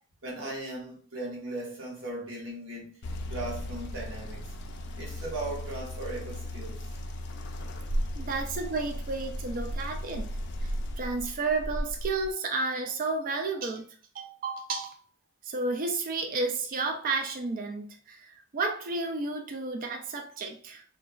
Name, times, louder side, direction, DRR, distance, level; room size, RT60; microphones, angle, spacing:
voice 1, 0.2-3.0 3.3-4.5 5.0-7.0, right 2 dB, 70° right, 1.0 m, -38 dB
sound 1, 3.0-12.3, equal, 60° left, 0.4 m, -35 dB
voice 2, 8.1-10.3 10.6-15.0 15.4-20.8, right 3 dB, 45° right, 0.4 m, -32 dB
2.9 x 2.2 x 2.3 m
head